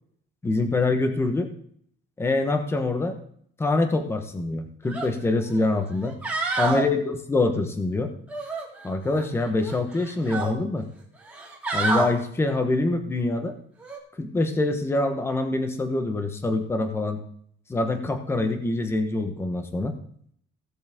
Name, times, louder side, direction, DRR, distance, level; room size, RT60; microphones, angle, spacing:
voice 1, 0.4-1.5 2.2-3.2 3.6-6.2 6.6-8.1 8.8-10.9 11.7-13.5 14.2-17.2 17.7-20.0, left 2 dB, 10° left, 6 dB, 1.1 m, -25 dB
sound 1, 4.9-5.1 5.5-5.6 6.1-6.9 8.3-9.3 9.6-10.5 11.2-12.1 13.8-14.0, right 3 dB, 5° right, 2.2 m, -28 dB
16.5 x 7.3 x 3.6 m, 0.63 s
cardioid pair, 165°, 21 cm